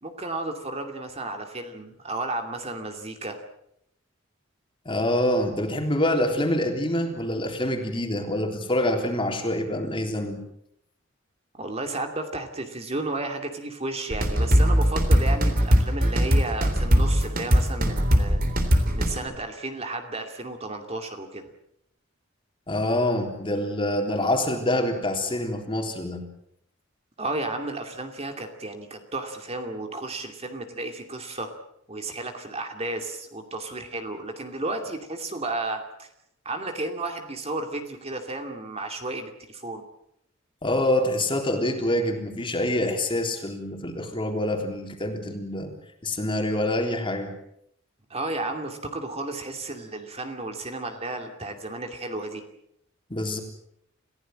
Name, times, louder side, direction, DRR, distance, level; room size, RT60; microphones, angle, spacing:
voice 1, 0.0-3.4 11.5-18.4 18.9-21.5 27.2-31.5 31.9-36.1 36.4-39.8 48.1-52.4, right 2 dB, 30° right, 5 dB, 2.6 m, -33 dB
voice 2, 4.9-10.4 22.7-26.2 40.6-45.7 46.0-47.3 53.1-53.4, left 1 dB, 25° left, 4 dB, 3.6 m, -26 dB
sound 1, 14.1-19.2, equal, 45° right, 3.6 m, -20 dB
28.5 x 16.0 x 7.7 m, 0.74 s
head